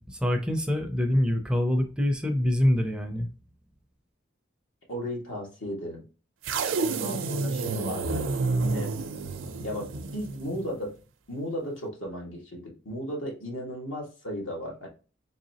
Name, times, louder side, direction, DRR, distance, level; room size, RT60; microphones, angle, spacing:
voice 1, 0.0-3.3, left 1 dB, 5° right, 0.4 m, -25 dB
voice 2, 4.9-6.0 6.8-8.2 8.6-8.9 9.6-10.9 11.3-14.9, equal, 75° left, 1.5 m, -35 dB
sound 1, 6.4-10.7, right 3 dB, 80° right, 0.5 m, -30 dB
3.9 x 3.2 x 2.8 m
head